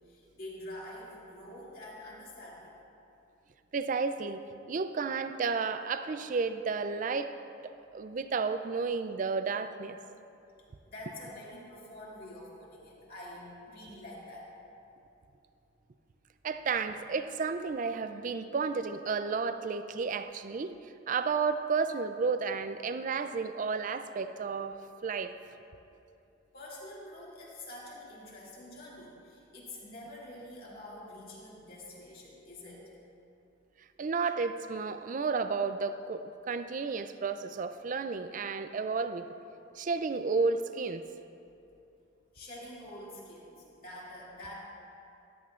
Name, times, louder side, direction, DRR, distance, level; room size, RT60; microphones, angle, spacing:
voice 1, 0.1-2.8 10.9-14.5 26.5-32.9 42.3-44.5, left 1 dB, 45° left, -6 dB, 2.3 m, -46 dB
voice 2, 3.7-7.3 7.6-10.0 16.4-25.3 34.0-39.3 39.8-41.0, right 4 dB, 40° right, 10 dB, 0.3 m, -32 dB
14.0 x 12.0 x 2.5 m, 2.7 s
head